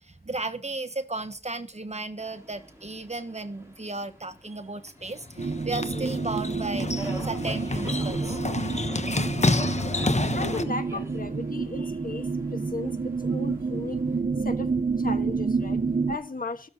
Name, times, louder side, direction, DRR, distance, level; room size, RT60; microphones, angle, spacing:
voice 1, 0.0-8.4, right 3 dB, 50° right, 1.2 m, -35 dB
Subway metro underground, 2.2-14.2, right 1 dB, 20° right, 5.2 m, -46 dB
sound 1, 5.0-10.6, left 3 dB, 50° left, 1.1 m, -29 dB
sound 2, 5.4-16.2, right 4 dB, 75° right, 0.9 m, -29 dB
voice 2, 10.3-14.0 14.4-16.7, left 3 dB, 80° left, 1.4 m, -36 dB
15.0 x 6.8 x 7.2 m
wide cardioid pair, 50°, 14 cm